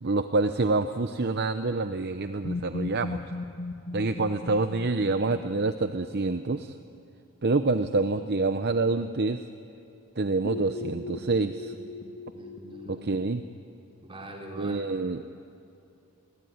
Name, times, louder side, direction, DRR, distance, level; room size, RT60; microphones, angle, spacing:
voice 1, 0.0-3.2 3.9-6.8 7.4-9.4 10.2-11.7 12.9-13.4 14.6-15.2, right 3 dB, 45° right, 9 dB, 0.8 m, -27 dB
sound 1, 2.4-6.4 10.4-12.9, left 2 dB, 60° left, 1.6 m, -37 dB
voice 2, 12.3-13.1 14.0-14.8, right 1 dB, 25° right, -1 dB, 4.6 m, -43 dB
29.5 x 21.5 x 9.5 m, 2.7 s
head